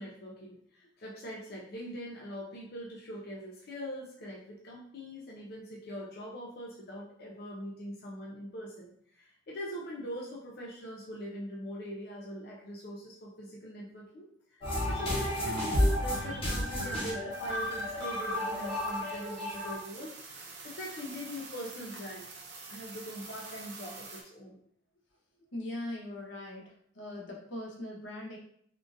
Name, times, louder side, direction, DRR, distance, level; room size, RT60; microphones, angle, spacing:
voice 1, 0.0-14.3 14.5-22.3 22.7-24.6, equal, 55° left, -3 dB, 0.5 m, -42 dB
sound 1, 14.6-19.7, left 1 dB, 30° left, 0.8 m, -31 dB
sound 2, 17.3-24.2, right 4 dB, 65° right, 0.7 m, -48 dB
voice 2, 25.5-28.4, left 1 dB, 90° left, -1 dB, 0.9 m, -40 dB
3.6 x 2.5 x 2.5 m, 0.67 s
head